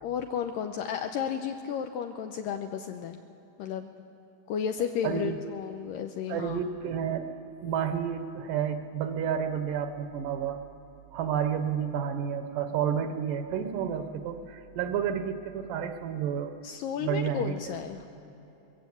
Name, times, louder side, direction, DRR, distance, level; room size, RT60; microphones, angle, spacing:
voice 1, 0.0-3.2 3.6-3.9 4.5-6.6 16.6-18.1, left 8 dB, 80° left, 6 dB, 2.2 m, -33 dB
voice 2, 5.0-5.4 6.3-7.3 7.6-10.6 11.1-16.5 17.0-17.5, right 8 dB, 75° right, 8 dB, 2.3 m, -30 dB
21.5 x 15.5 x 8.3 m, 3.0 s
omnidirectional pair, 4.2 m